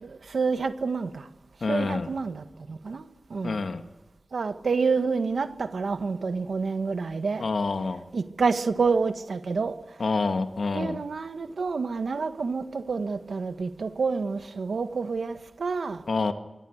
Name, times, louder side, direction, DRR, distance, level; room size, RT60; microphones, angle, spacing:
voice 1, 0.0-1.3 1.7-3.0 3.3-3.6 4.3-7.4 8.1-9.7 10.7-16.0, right 4 dB, 90° right, 1.6 m, -28 dB
voice 2, 1.6-2.1 3.4-3.9 7.4-8.1 10.0-11.0 16.1-16.3, left 3 dB, 75° left, 1.9 m, -27 dB
26.0 x 25.0 x 6.6 m
wide cardioid pair, 75°, 0 cm